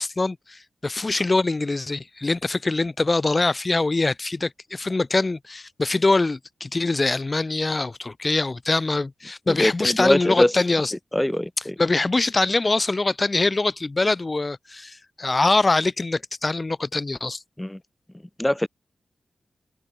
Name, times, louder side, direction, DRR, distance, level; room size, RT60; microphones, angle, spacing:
voice 1, 0.0-10.9 11.8-17.4, left 3 dB, 35° left, 0.5 m, -23 dB
voice 2, 9.5-10.5 11.1-11.7 17.6-17.8 18.4-18.7, left 1 dB, 10° left, 1.3 m, -22 dB
cardioid pair, 55°, 0 cm